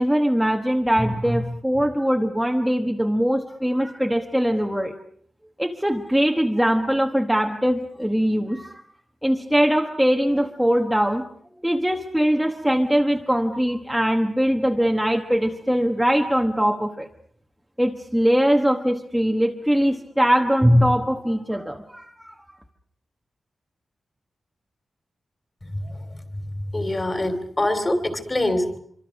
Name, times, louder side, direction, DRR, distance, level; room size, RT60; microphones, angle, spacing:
voice 1, 0.0-5.0 5.6-8.8 9.2-11.2 11.6-17.1 17.8-22.3, equal, ahead, 2 dB, 1.2 m, -21 dB
voice 2, 26.7-28.8, left 1 dB, 20° left, 9 dB, 3.0 m, -24 dB
26.0 x 24.5 x 6.3 m, 0.63 s
wide cardioid pair, 165°, 0 cm